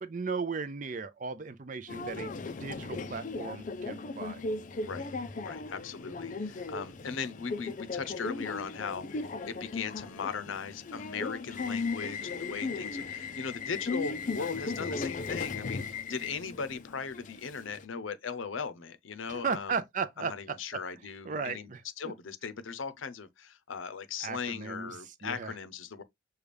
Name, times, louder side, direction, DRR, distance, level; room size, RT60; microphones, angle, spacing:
voice 1, 0.0-4.4 19.3-20.6 21.2-21.8 24.2-25.5, right 5 dB, 40° right, 0.5 m, -36 dB
Subway metro underground, 1.9-17.8, left 3 dB, 40° left, 0.4 m, -37 dB
voice 2, 5.4-19.8 20.2-21.7 22.0-26.0, left 5 dB, 85° left, 0.7 m, -38 dB
6.6 x 2.3 x 3.3 m
head